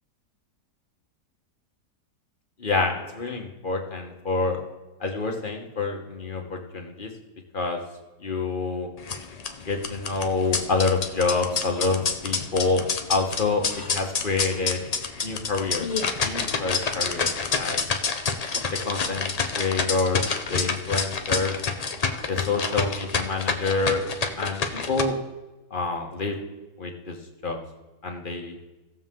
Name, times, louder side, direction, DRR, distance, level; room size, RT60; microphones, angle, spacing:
voice 1, 2.6-4.6 5.0-7.1 7.5-7.8 8.2-8.9 9.7-12.8 13.1-14.8 15.2-15.9 16.2-17.8 18.5-21.6 22.3-24.0 24.4-25.1 25.7-26.4 26.8-27.2 27.4-27.6 28.0-28.6, left 3 dB, 35° left, 2 dB, 1.2 m, -27 dB
sound 1, 9.0-25.0, left 5 dB, 70° left, 0.3 m, -28 dB
17.0 x 7.1 x 3.7 m, 1.1 s
omnidirectional pair, 1.8 m